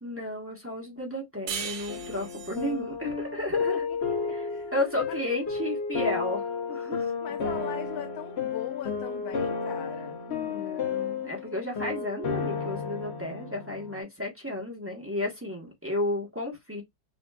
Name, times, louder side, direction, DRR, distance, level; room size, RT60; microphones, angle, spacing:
voice 1, 0.0-3.9 4.3-4.4 4.7-7.1 10.3-16.8, left 1 dB, 10° right, 0.6 m, -33 dB
sound 1, 1.5-4.6, right 7 dB, 85° right, 1.6 m, -39 dB
sound 2, 1.9-14.0, left 5 dB, 60° left, 0.6 m, -32 dB
voice 2, 4.3-4.7 5.1-5.2 6.9-10.2, left 11 dB, 90° left, 1.4 m, -40 dB
5.0 x 2.3 x 2.3 m
omnidirectional pair, 2.1 m